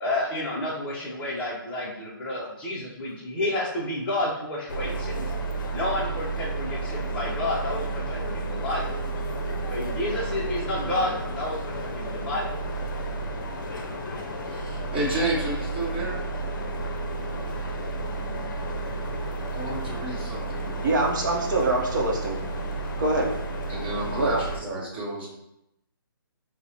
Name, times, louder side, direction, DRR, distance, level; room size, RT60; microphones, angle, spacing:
voice 1, 0.0-5.3 5.7-9.0 9.7-12.6, left 1 dB, 10° left, -6 dB, 0.5 m, -30 dB
sound 1, 4.7-24.6, right 2 dB, 55° left, 0.5 m, -31 dB
voice 2, 14.5-16.2 19.3-21.0 23.7-25.3, right 2 dB, 30° right, -5 dB, 1.0 m, -31 dB
voice 3, 20.8-22.4 23.0-23.3 24.2-24.4, right 2 dB, 55° right, 0 dB, 0.7 m, -24 dB
4.6 x 2.0 x 2.8 m, 0.82 s
hypercardioid pair, 165°, 12 cm